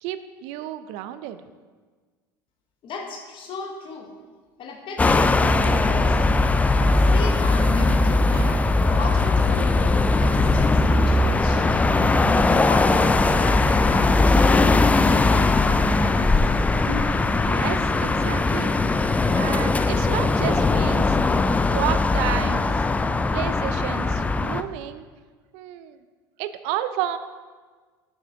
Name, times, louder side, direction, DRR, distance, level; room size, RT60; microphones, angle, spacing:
voice 1, 0.0-1.4 17.4-18.8 19.3-21.2 21.7-22.7 23.3-25.1 25.5-26.0 26.4-27.2, right 12 dB, 60° right, 12 dB, 0.4 m, -31 dB
voice 2, 2.8-4.1 4.6-6.2 6.8-8.3 8.8-11.9 12.4-16.4, left 4 dB, 45° left, 2 dB, 1.1 m, -35 dB
sound 1, 5.0-24.6, left 3 dB, 10° left, 0.3 m, -20 dB
Engine, 6.8-21.0, right 1 dB, 85° right, 1.9 m, -41 dB
7.8 x 5.8 x 3.7 m, 1.5 s
hypercardioid pair, 70°, 12 cm